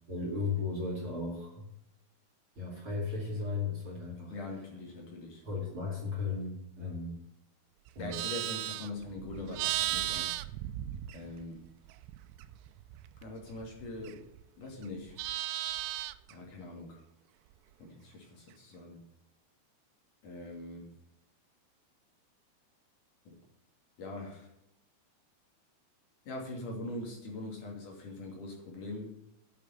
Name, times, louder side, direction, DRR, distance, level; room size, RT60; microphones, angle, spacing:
voice 1, 0.1-1.7 2.5-4.3 5.4-7.2 7.9-8.3, left 4 dB, 35° right, -2 dB, 2.9 m, -35 dB
voice 2, 4.3-5.4 8.0-10.3 11.1-11.6 13.2-14.2 14.6-15.2 16.3-17.0 17.8-19.0 20.2-20.9 23.3-23.4 24.0-24.5 26.3-29.2, left 2 dB, 50° left, 0 dB, 4.0 m, -42 dB
Livestock farm animals working animals, 7.9-11.6 11.9-14.4 14.7-16.3, right 15 dB, 85° right, 2.8 m, -36 dB
8.9 x 8.3 x 9.1 m, 0.81 s
omnidirectional pair, 4.9 m